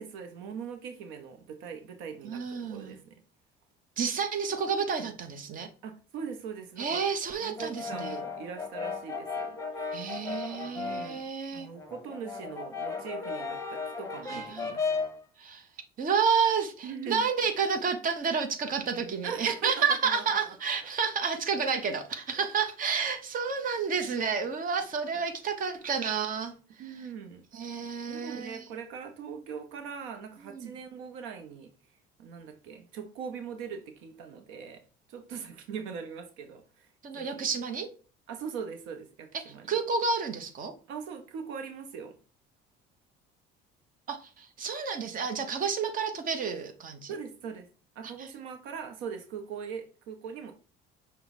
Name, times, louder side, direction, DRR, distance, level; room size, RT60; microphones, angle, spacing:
voice 1, 0.0-3.2 5.8-7.1 7.4-9.9 10.7-11.2 11.5-14.9 16.8-17.2 19.2-20.5 25.1-25.2 26.8-27.4 28.1-31.7 32.2-34.8 35.1-36.9 37.1-37.5 38.3-39.8 40.9-42.1 47.1-47.7 47.9-50.5, right 6 dB, 85° right, 0.8 m, -41 dB
voice 2, 2.2-3.0 4.0-5.7 6.8-8.2 9.9-11.7 14.3-14.7 15.4-15.7 16.0-26.5 27.5-28.7 30.4-30.7 37.0-37.9 39.4-40.7 44.1-47.2 48.2-48.3, right 6 dB, 45° right, 0.9 m, -30 dB
Brass instrument, 7.6-11.2 11.6-15.2, left 4 dB, 15° left, 0.8 m, -35 dB
5.8 x 2.2 x 4.0 m
cardioid pair, 105°, 20 cm